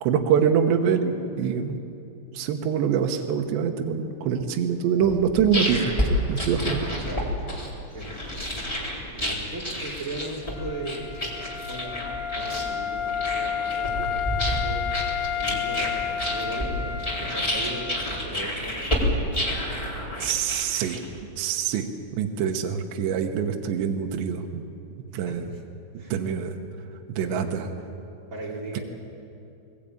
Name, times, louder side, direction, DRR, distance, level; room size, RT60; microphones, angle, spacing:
voice 1, 0.0-1.8 2.3-6.9 20.2-21.0 21.4-21.9 22.2-24.6 25.1-25.4 26.1-26.5 27.1-27.6, right 7 dB, 75° right, 4 dB, 3.0 m, -25 dB
sound 1, 5.1-21.2, equal, 10° left, 2.9 m, -29 dB
voice 2, 7.0-8.4 9.1-11.1 11.7-12.0 12.3-19.2 25.1-25.6 26.0-26.1 27.2-27.4 28.3-28.8, right 2 dB, 20° right, -3 dB, 2.6 m, -38 dB
Wind instrument woodwind instrument, 10.5-18.3, left 8 dB, 85° left, 2.0 m, -31 dB
22.0 x 18.5 x 8.8 m, 2.7 s
omnidirectional pair, 5.7 m